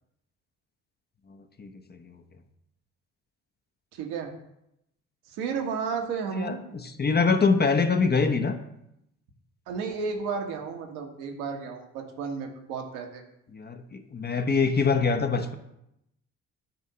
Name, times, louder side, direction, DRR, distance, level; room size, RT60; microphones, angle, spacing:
voice 1, 1.6-2.0 6.3-8.6 13.5-15.6, left 4 dB, 25° left, 7 dB, 0.8 m, -24 dB
voice 2, 3.9-4.3 5.3-6.6 9.7-13.2, right 5 dB, 65° right, 3 dB, 1.4 m, -32 dB
8.6 x 3.7 x 5.5 m, 0.81 s
figure-of-eight pair, 50°, 41 cm